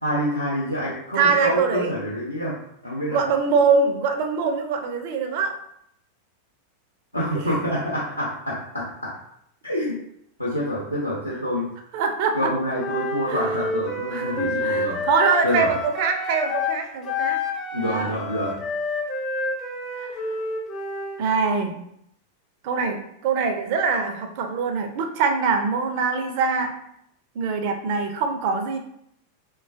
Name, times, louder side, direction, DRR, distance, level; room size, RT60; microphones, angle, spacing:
voice 1, 0.0-2.6 2.8-3.2 7.1-9.2 9.6-10.0 10.4-11.7 12.3-15.0 15.4-15.7 17.7-18.5, equal, 90° left, -8 dB, 0.5 m, -27 dB
voice 2, 1.1-1.9 3.1-5.6 7.3-7.5 11.9-12.5 13.3-13.4 14.1-17.4 17.7-18.2 20.0-20.2 21.2-21.7 22.6-26.7 27.4-28.8, right 5 dB, 45° right, 5 dB, 0.4 m, -23 dB
Wind instrument woodwind instrument, 12.7-16.8 17.0-21.2, left 3 dB, 30° left, 0.5 m, -29 dB
3.1 x 2.2 x 2.6 m, 0.74 s
figure-of-eight pair, 90°, 0 cm